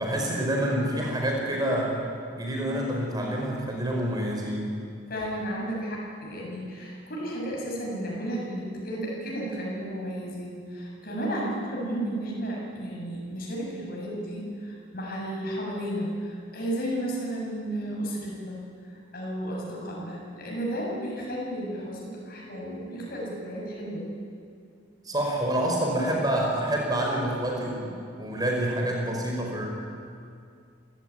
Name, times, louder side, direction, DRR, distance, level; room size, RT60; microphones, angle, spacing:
voice 1, 0.0-2.0 2.3-4.7 25.0-29.7, right 1 dB, 20° right, -1 dB, 5.0 m, -27 dB
voice 2, 5.1-18.6 19.1-24.1, right 1 dB, 45° left, -3 dB, 7.3 m, -33 dB
28.0 x 16.5 x 9.5 m, 2.3 s
head